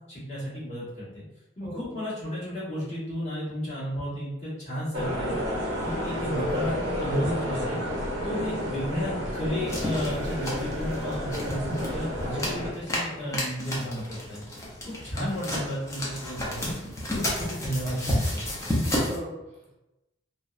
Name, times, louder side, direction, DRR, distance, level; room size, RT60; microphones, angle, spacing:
voice 1, 0.1-1.2 1.6-5.4 5.8-7.8 8.2-14.4 14.8-16.7 17.1-18.5, equal, 35° left, -11 dB, 1.3 m, -33 dB
voice 2, 1.6-2.0 19.0-19.8, right 1 dB, 35° right, -6 dB, 0.6 m, -40 dB
sound 1, 4.9-12.7, equal, 90° right, 0.7 m, -30 dB
sound 2, 9.7-19.2, left 1 dB, 15° left, 0.5 m, -32 dB
2.6 x 2.0 x 2.3 m, 0.98 s
head